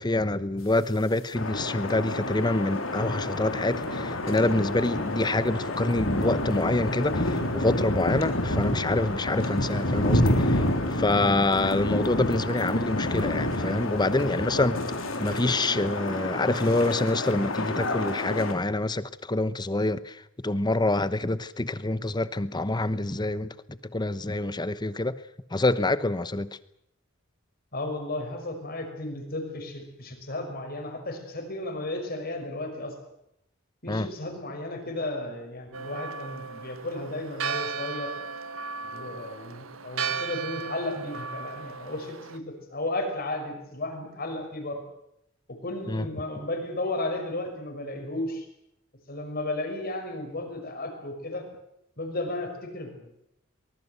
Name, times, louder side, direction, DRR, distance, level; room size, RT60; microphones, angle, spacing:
voice 1, 0.0-14.8 15.2-25.2 25.5-26.5 33.9-34.1 45.9-46.1, left 2 dB, 20° left, 1.0 m, -26 dB
sound 1, 1.3-18.5, left 1 dB, 75° left, 3.7 m, -29 dB
voice 2, 27.7-33.0 33.8-38.1 38.8-44.8 45.6-48.5 49.1-51.4 52.0-53.3, left 2 dB, 50° left, 5.8 m, -34 dB
Church bell, 35.7-42.4, right 5 dB, 80° right, 1.5 m, -35 dB
24.0 x 20.5 x 8.1 m
head